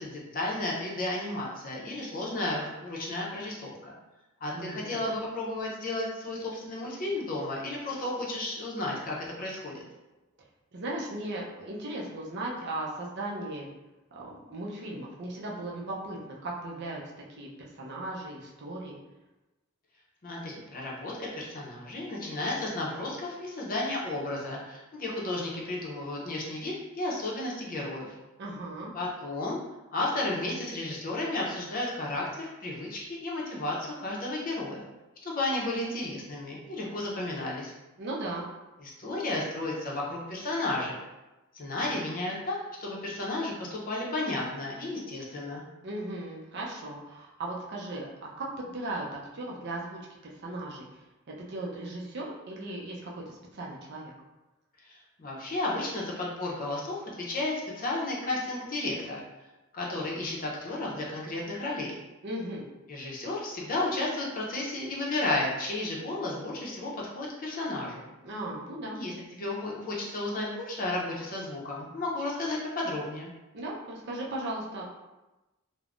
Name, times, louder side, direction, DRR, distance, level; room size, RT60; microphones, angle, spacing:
voice 1, 0.0-3.9 4.4-9.8 20.2-28.1 28.9-29.6 29.9-34.9 35.2-37.7 38.8-41.0 41.5-45.6 54.8-59.2 59.7-61.9 62.9-68.1 68.9-73.3, left 2 dB, 40° left, -4 dB, 0.6 m, -33 dB
voice 2, 4.5-5.0 10.7-13.7 14.1-17.0 17.4-19.0 28.4-28.9 38.0-38.5 45.8-49.1 49.3-51.0 51.3-54.1 62.2-62.6 68.2-69.0 73.5-74.9, right 1 dB, 55° right, -3 dB, 0.5 m, -37 dB
3.3 x 2.1 x 2.4 m, 1.0 s
head